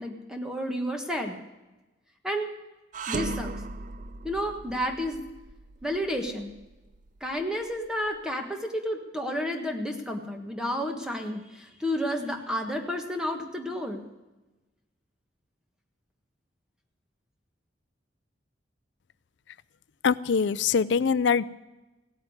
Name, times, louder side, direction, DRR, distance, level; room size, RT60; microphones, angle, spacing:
voice 1, 0.0-1.4 2.2-2.5 3.1-3.5 4.2-5.2 5.8-6.5 7.2-14.0, equal, 5° right, 3 dB, 1.5 m, -31 dB
sound 1, 2.9-8.2, right 3 dB, 45° right, 0.6 m, -38 dB
voice 2, 20.0-21.4, left 6 dB, 70° left, 17 dB, 0.4 m, -23 dB
16.5 x 8.8 x 9.5 m, 1.1 s
head